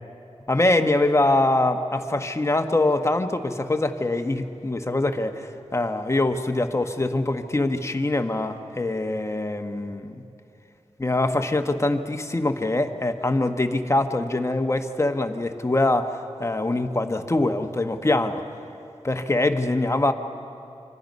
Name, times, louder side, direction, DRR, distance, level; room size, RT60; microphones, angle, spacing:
voice 1, 0.5-10.2 11.0-18.4 19.0-20.1, left 2 dB, 25° left, 7 dB, 1.1 m, -23 dB
27.5 x 25.5 x 5.4 m, 2.7 s
wide cardioid pair, 95°, 12 cm